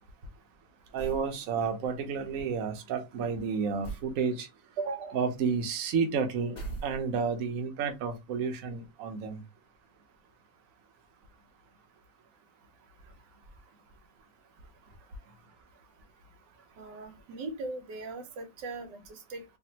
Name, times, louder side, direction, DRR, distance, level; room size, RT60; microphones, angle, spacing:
voice 1, 0.9-4.5 5.1-6.6 6.8-9.4, right 6 dB, 60° right, 1.0 m, -31 dB
sound 1, 1.0-1.3 3.8-4.2 6.5-7.3, right 3 dB, 25° left, 0.9 m, -39 dB
voice 2, 4.8-5.2 16.8-19.4, right 3 dB, 90° right, 1.5 m, -38 dB
3.4 x 2.5 x 2.8 m
omnidirectional pair, 1.8 m